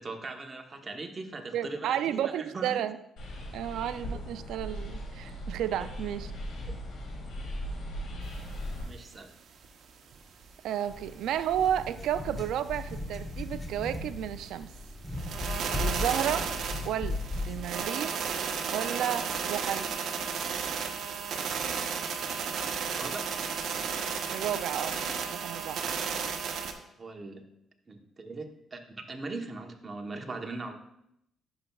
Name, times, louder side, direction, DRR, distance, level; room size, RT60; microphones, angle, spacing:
voice 1, 0.0-2.8 6.6-6.7 8.8-9.3 22.9-23.2 27.0-27.4 27.9-28.8 29.1-30.7, right 3 dB, 30° right, 3 dB, 0.9 m, -40 dB
voice 2, 1.5-3.0 3.5-6.3 10.6-14.7 15.8-16.5 16.8-17.2 17.4-18.3 18.7-19.9 24.3-25.0 25.3-25.8, right 10 dB, 85° right, 12 dB, 0.3 m, -32 dB
sound 1, 3.2-8.8, equal, 80° left, 2.0 m, -38 dB
sound 2, 8.3-8.4 8.6-8.7 9.1-9.2 9.6-9.7 10.2-10.7 11.2-11.3 11.7-11.8 12.2-12.3 12.7-12.8 13.2-13.3 13.7-13.8 14.2-14.3 14.8-14.9 15.1-26.7, right 6 dB, 70° right, 0.7 m, -33 dB
sound 3, 10.9-17.8, left 2 dB, 15° left, 1.1 m, -37 dB
11.0 x 5.8 x 2.3 m, 0.76 s
cardioid pair, 95°, 0 cm